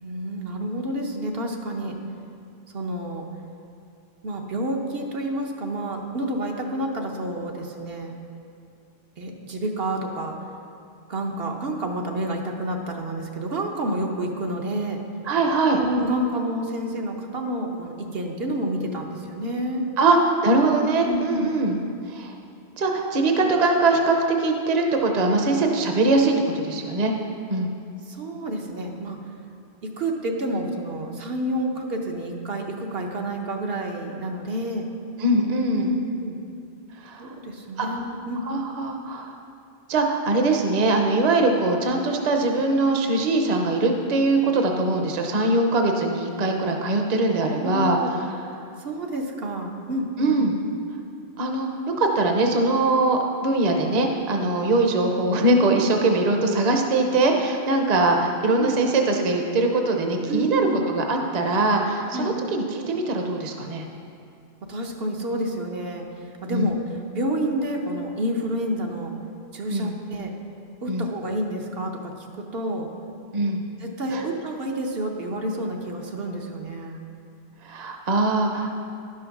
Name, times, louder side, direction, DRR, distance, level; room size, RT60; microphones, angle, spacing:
voice 1, 0.0-2.0 2.7-3.2 4.2-8.1 9.2-10.4 11.1-15.0 15.8-19.9 21.0-21.5 28.1-29.2 29.8-34.8 35.7-35.9 36.2-36.4 37.2-38.4 44.5-44.7 47.6-48.1 48.8-50.4 58.6-58.7 60.3-60.8 62.1-62.4 64.7-66.1 66.4-66.8 67.1-69.1 69.5-70.3 70.8-72.9 73.8-77.0, right 1 dB, 70° right, 1 dB, 1.1 m, -29 dB
voice 2, 15.3-15.8 20.0-21.8 22.1-22.4 22.8-27.1 27.5-27.7 35.2-35.9 37.0-37.3 37.8-37.9 38.5-39.3 39.9-48.1 50.2-50.5 51.4-51.7 52.0-63.9 66.5-66.7 69.7-70.0 70.9-71.1 73.3-73.6 74.1-74.2 77.6-78.7, right 2 dB, 45° right, 3 dB, 0.8 m, -22 dB
11.0 x 6.3 x 5.9 m, 2.5 s
omnidirectional pair, 1.1 m